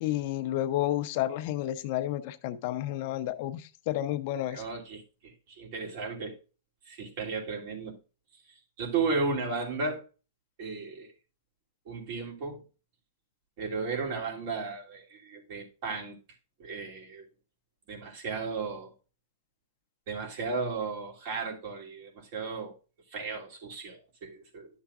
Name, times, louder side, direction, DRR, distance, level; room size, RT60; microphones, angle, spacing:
voice 1, 0.0-4.6, left 13 dB, 50° left, 0.8 m, -31 dB
voice 2, 4.5-6.4 6.9-8.0 8.5-10.0 10.6-11.1 11.9-12.6 13.6-16.2 16.6-17.2 17.9-18.9 20.1-22.8 23.1-24.7, right 4 dB, 55° right, 3.0 m, -34 dB
11.5 x 7.1 x 2.6 m
hypercardioid pair, 135°, 0 cm